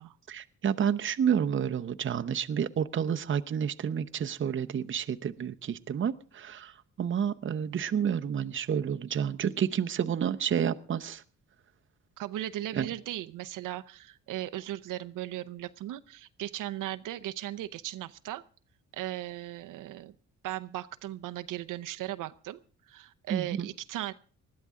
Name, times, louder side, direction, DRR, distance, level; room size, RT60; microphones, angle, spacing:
voice 1, 0.3-11.2 12.7-12.9 23.3-23.7, right 8 dB, 40° right, 9 dB, 0.8 m, -30 dB
voice 2, 12.2-18.4 18.9-20.1 20.4-22.6 22.9-24.1, right 14 dB, 85° right, 9 dB, 0.7 m, -37 dB
20.0 x 13.0 x 3.6 m, 0.41 s
cardioid pair, 105°, 31 cm